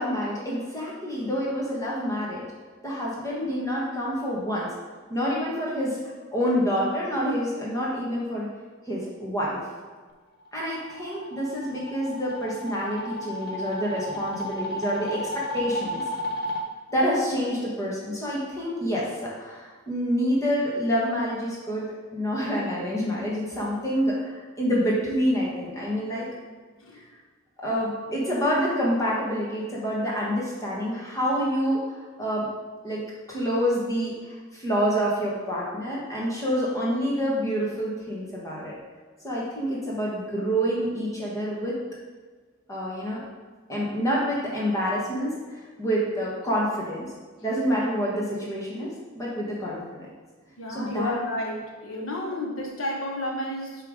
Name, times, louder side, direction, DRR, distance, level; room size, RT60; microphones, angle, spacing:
voice 1, 0.0-2.4 2.8-4.7 5.1-6.0 6.3-8.5 8.9-9.6 10.5-16.0 16.9-26.3 26.9-27.1 27.6-31.8 32.2-32.5 32.8-38.8 39.2-41.8 42.7-43.2 43.7-47.1 47.4-49.8 50.7-51.1, equal, 15° left, -5 dB, 1.4 m, -27 dB
sound 1, 10.5-16.6, left 1 dB, 50° left, 0.7 m, -33 dB
voice 2, 50.6-53.9, left 1 dB, 75° left, 0 dB, 1.2 m, -31 dB
7.7 x 3.4 x 5.0 m, 1.4 s
head